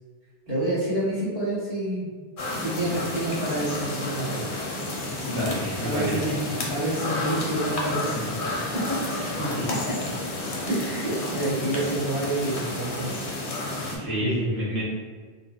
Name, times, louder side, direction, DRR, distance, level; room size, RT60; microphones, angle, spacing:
voice 1, 0.5-2.1 2.6-4.5 5.8-6.3 6.7-9.0 9.7-9.8 10.6-13.1 13.7-14.7, right 1 dB, 60° right, -10 dB, 1.6 m, -28 dB
sound 1, 2.4-14.0, left 2 dB, 55° left, 0.7 m, -31 dB
voice 2, 5.0-6.2 9.1-9.7 13.9-14.8, equal, 40° right, -9 dB, 0.7 m, -30 dB
3.7 x 2.1 x 2.3 m, 1.5 s
omnidirectional pair, 1.1 m